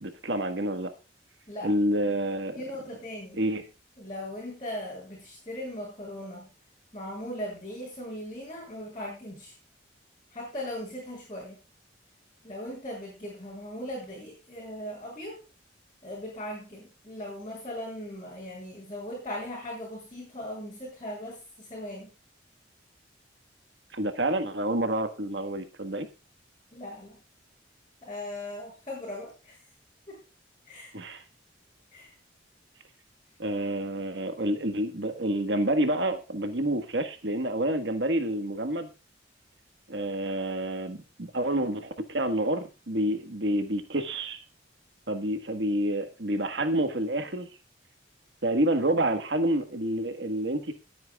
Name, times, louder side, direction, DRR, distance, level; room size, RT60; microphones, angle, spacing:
voice 1, 0.0-0.9 1.6-2.6 3.4-3.6 23.9-26.1 30.9-31.2 33.4-38.9 39.9-44.4 45.1-47.5 48.4-50.7, right 1 dB, 70° right, 8 dB, 1.5 m, -28 dB
voice 2, 2.6-3.4 4.0-6.5 6.9-9.5 10.3-11.6 12.4-15.4 16.0-22.1 26.7-27.2 28.0-29.6 30.1-30.2 30.7-30.9 31.9-32.1, left 1 dB, 25° left, -7 dB, 7.2 m, -39 dB
22.0 x 9.3 x 2.4 m, 0.31 s
head